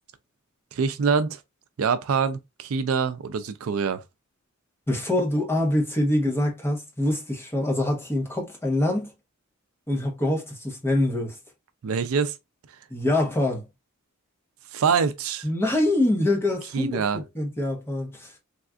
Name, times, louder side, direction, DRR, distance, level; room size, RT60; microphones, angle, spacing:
voice 1, 0.7-1.4 1.8-4.0 11.8-12.3 14.7-15.5 16.7-17.2, right 5 dB, 75° right, 0.4 m, -25 dB
voice 2, 4.9-9.1 9.9-11.4 12.9-13.7 15.4-18.3, left 1 dB, 10° left, 0.9 m, -25 dB
3.5 x 2.4 x 2.3 m
head